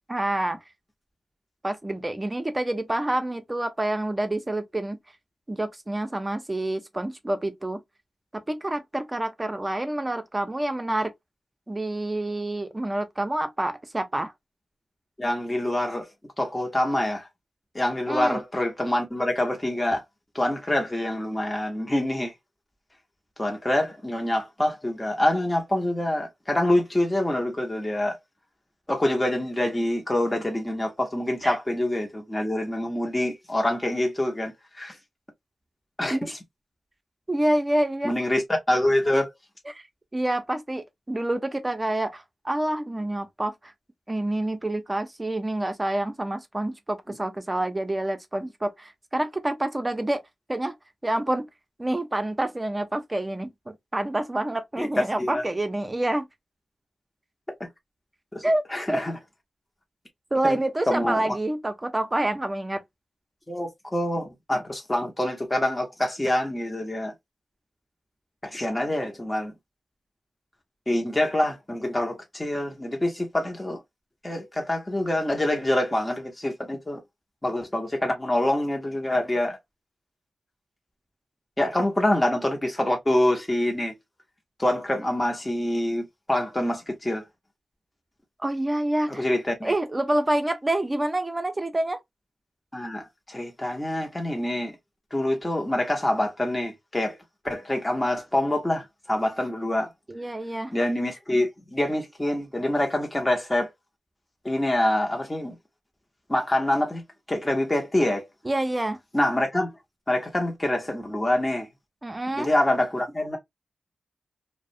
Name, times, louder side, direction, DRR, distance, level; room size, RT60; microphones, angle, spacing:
voice 1, 0.1-0.6 1.6-5.0 5.5-7.8 8.3-11.1 11.7-14.3 18.1-18.4 31.4-31.6 36.1-36.3 37.3-38.1 39.7-39.8 40.1-43.7 44.1-50.2 50.5-50.7 51.0-51.5 51.8-56.3 58.4-58.6 58.9-59.0 60.3-62.8 88.4-89.2 89.6-92.0 100.1-100.7 108.4-109.0 112.0-112.5, right 1 dB, 25° right, 0.5 m, -27 dB
voice 2, 15.2-16.1 16.4-17.3 17.7-20.0 20.3-22.3 23.4-28.2 28.9-35.0 36.0-36.4 38.0-39.3 54.8-55.4 58.3-58.4 58.7-59.2 60.4-60.6 60.9-61.3 63.5-67.1 68.4-69.5 70.9-73.8 74.2-77.0 77.4-79.6 81.6-83.9 84.6-87.2 89.2-89.7 92.7-94.8 95.1-97.2 97.4-99.9 100.7-103.7 104.4-105.5 106.3-107.0 107.3-108.3 109.1-109.7 110.1-111.7 112.3-113.4, left 1 dB, 20° left, 0.7 m, -26 dB
2.3 x 2.0 x 2.6 m
cardioid pair, 50°, 0 cm